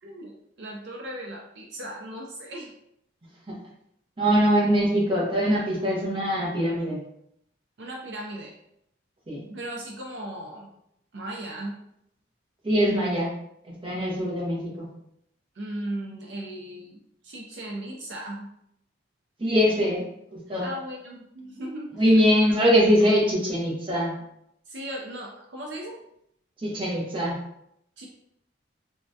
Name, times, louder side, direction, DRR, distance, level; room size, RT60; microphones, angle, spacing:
voice 1, 0.0-2.7 7.8-8.6 9.5-10.7 11.1-11.8 15.5-18.5 20.6-22.3 24.7-26.0 28.0-28.1, right 1 dB, 65° right, -1 dB, 0.4 m, -37 dB
voice 2, 4.2-7.0 9.3-9.4 12.6-13.3 13.7-14.9 19.4-20.1 20.3-20.7 22.0-24.1 26.6-27.4, equal, 25° right, -4 dB, 0.7 m, -22 dB
3.4 x 2.1 x 2.6 m, 0.75 s
head